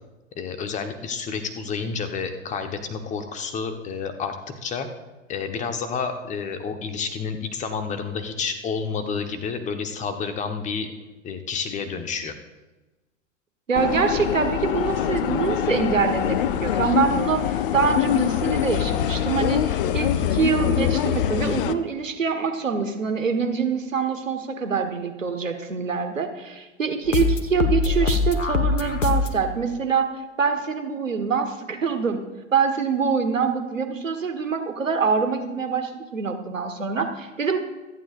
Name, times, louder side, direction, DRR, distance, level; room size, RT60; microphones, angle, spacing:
voice 1, 0.3-4.4 4.6-4.9 5.3-10.9 11.2-12.4, left 5 dB, 20° left, 7 dB, 1.1 m, -30 dB
sound 1, 13.7-21.7, left 11 dB, 45° left, 0.6 m, -24 dB
voice 2, 13.7-30.1 30.4-32.2 32.5-37.6, right 5 dB, 85° right, 6 dB, 1.5 m, -25 dB
sound 2, 27.0-29.4, left 4 dB, 75° left, 1.3 m, -23 dB
26.0 x 9.0 x 2.5 m, 1.1 s
figure-of-eight pair, 105°, 38 cm